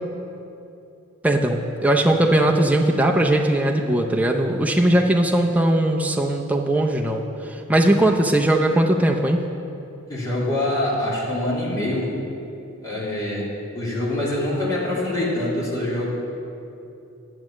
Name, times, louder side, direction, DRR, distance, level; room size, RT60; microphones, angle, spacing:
voice 1, 1.2-7.2 7.7-9.4, right 1 dB, 5° right, 0 dB, 0.5 m, -19 dB
voice 2, 10.1-12.1 12.8-13.5 13.7-16.1, left 1 dB, 20° left, -7 dB, 2.8 m, -24 dB
11.0 x 7.6 x 7.2 m, 2.8 s
head